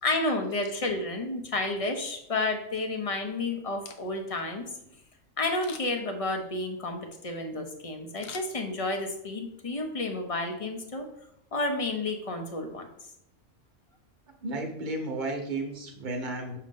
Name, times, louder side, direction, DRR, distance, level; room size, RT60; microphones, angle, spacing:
voice 1, 0.0-4.7 5.4-11.1 11.5-12.9, left 2 dB, 35° left, 4 dB, 0.6 m, -31 dB
Camera, 3.7-4.4 5.6-6.1 8.2-9.1 9.5-9.6, left 6 dB, 75° left, 1.0 m, -46 dB
voice 2, 14.4-16.6, right 2 dB, 40° right, 2 dB, 1.0 m, -33 dB
6.3 x 2.8 x 5.3 m, 0.78 s
omnidirectional pair, 1.4 m